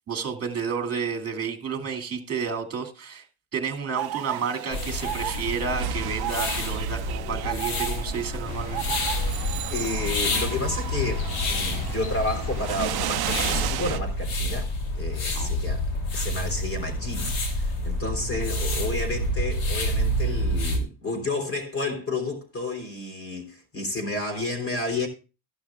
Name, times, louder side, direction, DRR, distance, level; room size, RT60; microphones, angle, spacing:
voice 1, 0.1-3.2 3.5-8.9 15.3-15.8 18.3-18.4, right 6 dB, 30° right, 2.3 m, -31 dB
sound 1, 4.0-14.0, right 14 dB, 50° right, 0.6 m, -33 dB
sound 2, 4.7-20.8, left 1 dB, 80° left, 3.0 m, -28 dB
sound 3, 8.4-14.0, left 1 dB, 50° left, 3.6 m, -36 dB
voice 2, 9.7-15.9 16.1-25.1, left 2 dB, 30° left, 3.6 m, -31 dB
14.5 x 12.0 x 2.3 m
cardioid pair, 145°, 47 cm